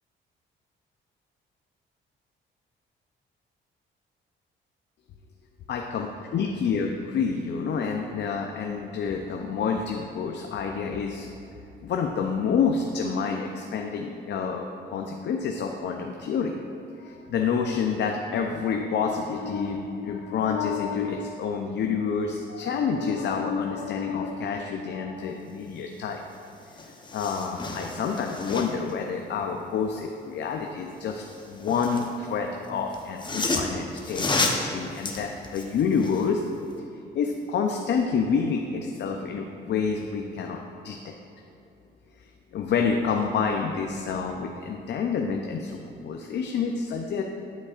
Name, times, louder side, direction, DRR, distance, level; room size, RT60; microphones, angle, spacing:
voice 1, 5.7-6.1 6.3-11.3 11.8-16.6 17.0-26.2 27.1-36.4 37.1-41.1 42.2-47.2, left 6 dB, 60° left, 2 dB, 0.5 m, -28 dB
sound 1, 26.3-26.4 26.7-28.9 31.1-32.1 32.9-36.3 36.7-36.8, left 3 dB, 25° left, 0.8 m, -31 dB
12.0 x 5.3 x 2.4 m, 2.9 s
cardioid pair, 90°, 20 cm